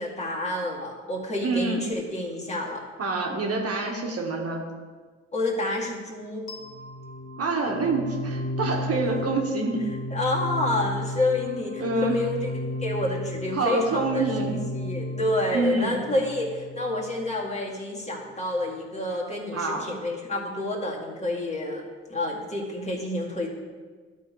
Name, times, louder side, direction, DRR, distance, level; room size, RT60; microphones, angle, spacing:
voice 1, 0.0-2.8 5.3-6.5 10.1-12.5 12.8-23.5, left 2 dB, 20° left, -3 dB, 2.0 m, -29 dB
voice 2, 1.4-1.8 3.0-4.6 7.4-9.8 11.8-12.2 13.6-14.6 15.5-16.0 19.5-19.9, right 3 dB, 50° right, 0 dB, 1.5 m, -26 dB
sound 1, 6.5-17.4, left 1 dB, 55° left, 1.8 m, -34 dB
12.0 x 4.3 x 4.7 m, 1.5 s
cardioid pair, 90°, 30 cm